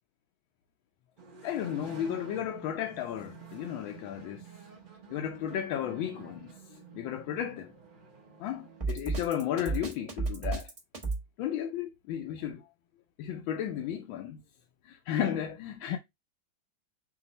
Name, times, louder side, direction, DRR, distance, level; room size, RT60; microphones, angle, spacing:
sound 1, 1.2-8.8, right 6 dB, 50° right, 0.6 m, -50 dB
voice 1, 1.4-4.5 5.1-7.7 8.4-10.7 11.4-12.7 13.2-14.4 14.8-16.0, left 10 dB, 75° left, 1.4 m, -34 dB
Drum kit, 8.8-11.2, right 3 dB, 25° right, 0.9 m, -32 dB
5.6 x 2.0 x 4.0 m
omnidirectional pair, 2.2 m